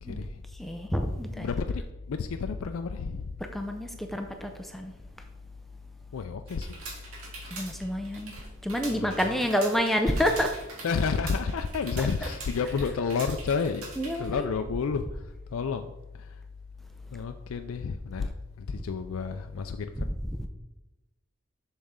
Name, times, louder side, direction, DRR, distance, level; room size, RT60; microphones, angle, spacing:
voice 1, 0.0-0.4 1.3-3.4 6.1-6.8 8.9-9.1 10.8-16.4 17.1-18.3 18.6-20.1, left 5 dB, 75° left, 0.4 m, -31 dB
voice 2, 0.5-1.5 3.4-4.9 7.5-8.3 8.6-10.5 12.0-12.1 14.0-14.6 18.2-18.3 20.0-20.5, equal, ahead, 0.5 m, -29 dB
sound 1, 6.5-14.3, right 3 dB, 85° right, 1.9 m, -43 dB
7.1 x 6.5 x 3.7 m
head